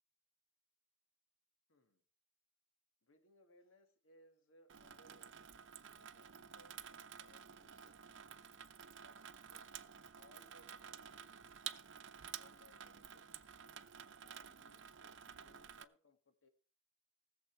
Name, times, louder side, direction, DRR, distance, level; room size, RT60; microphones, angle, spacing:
voice 1, 1.7-2.0 3.0-5.5 5.9-8.2 9.0-9.2 9.5-9.9 10.2-11.2 12.4-13.4 14.2-16.5, left 1 dB, 75° left, 6 dB, 1.9 m, -68 dB
Water tap faucet / Sink (filling or washing), 4.7-15.8, right 8 dB, 60° right, 0.7 m, -52 dB
19.0 x 7.2 x 4.5 m, 0.38 s
head